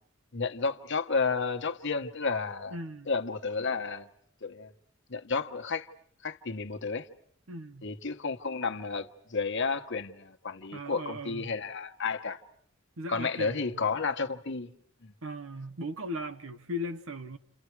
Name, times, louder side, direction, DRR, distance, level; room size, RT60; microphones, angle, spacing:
voice 1, 0.3-2.8 3.1-4.1 4.4-4.7 5.1-5.9 6.2-7.1 7.8-12.4 13.1-14.7 15.0-15.1, left 4 dB, 60° left, 1.3 m, -32 dB
voice 2, 2.7-3.1 7.5-7.9 10.7-11.5 13.0-13.8 15.2-17.4, equal, 85° right, 1.3 m, -38 dB
30.0 x 28.5 x 4.8 m
head